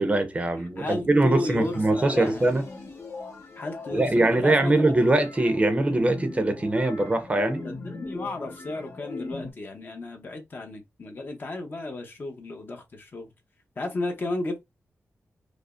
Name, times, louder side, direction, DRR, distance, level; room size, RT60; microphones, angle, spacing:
voice 1, 0.0-2.6 3.9-7.6, right 2 dB, 25° right, 0.6 m, -22 dB
voice 2, 0.8-2.5 3.6-4.7 7.6-13.3 13.8-14.6, left 2 dB, 40° left, 0.8 m, -33 dB
sound 1, 1.6-9.5, left 3 dB, 65° left, 1.1 m, -39 dB
4.9 x 2.0 x 2.4 m
wide cardioid pair, 140°, 5 cm